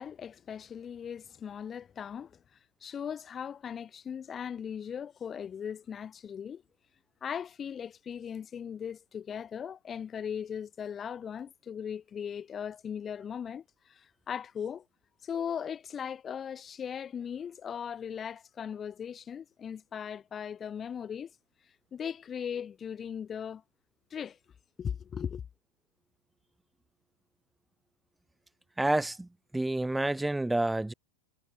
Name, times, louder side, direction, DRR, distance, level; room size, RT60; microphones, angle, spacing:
voice 1, 0.0-2.4 2.8-6.6 7.2-14.9 15.2-21.3 21.9-23.6 24.1-24.4 24.8-25.4, left 8 dB, 20° left, 3.5 m, -38 dB
voice 2, 28.8-30.9, right 1 dB, 5° right, 0.5 m, -29 dB
figure-of-eight pair, 90°, 0 cm